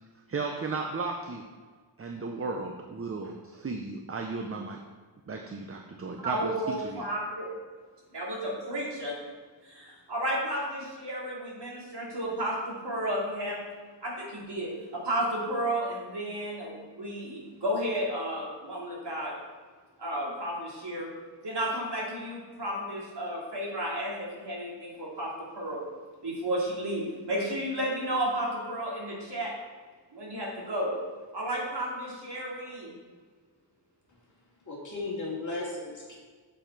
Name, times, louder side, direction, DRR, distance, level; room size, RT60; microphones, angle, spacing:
voice 1, 0.3-1.4 2.0-4.8 5.3-7.0, right 4 dB, 30° right, 2 dB, 0.6 m, -35 dB
voice 2, 6.2-7.5 8.1-9.2 9.6-13.6 14.0-19.3 20.0-21.1 21.4-25.8 26.2-29.5 30.1-30.9 31.3-32.9, right 1 dB, 60° right, -4 dB, 2.4 m, -32 dB
voice 3, 34.7-36.1, left 2 dB, 40° left, -4 dB, 2.2 m, -35 dB
7.3 x 7.1 x 4.5 m, 1.5 s
wide cardioid pair, 175°, 45 cm